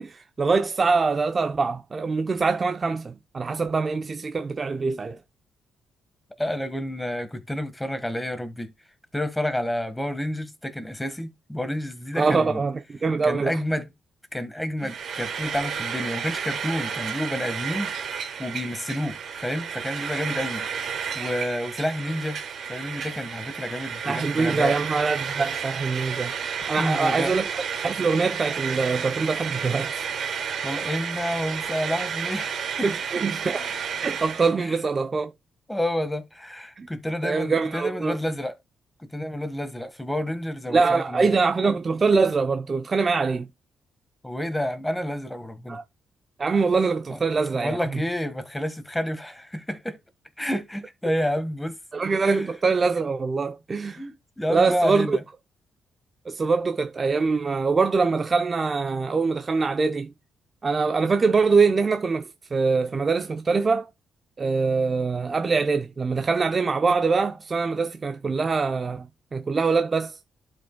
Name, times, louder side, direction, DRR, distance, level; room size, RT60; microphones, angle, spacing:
voice 1, 0.0-5.2 12.2-13.6 24.0-26.3 26.7-30.1 32.8-35.3 36.8-36.9 37.2-38.2 40.7-43.5 45.7-45.8 46.4-48.0 51.9-54.1 54.5-55.2 56.3-60.1 60.6-63.9 64.4-70.2, right 4 dB, 35° right, 0.6 m, -24 dB
voice 2, 6.4-8.7 9.1-12.6 13.2-13.9 14.3-20.7 21.1-22.4 22.7-24.8 26.8-27.4 30.6-33.2 34.6-34.8 35.7-38.5 39.1-41.3 44.2-45.8 47.1-47.2 47.5-50.0 50.4-51.8 52.3-52.4 54.0-55.2, left 1 dB, 10° left, 1.6 m, -29 dB
Frying (food), 14.8-34.5, right 7 dB, 65° right, 3.3 m, -31 dB
11.5 x 5.2 x 2.2 m
cardioid pair, 95°, 0 cm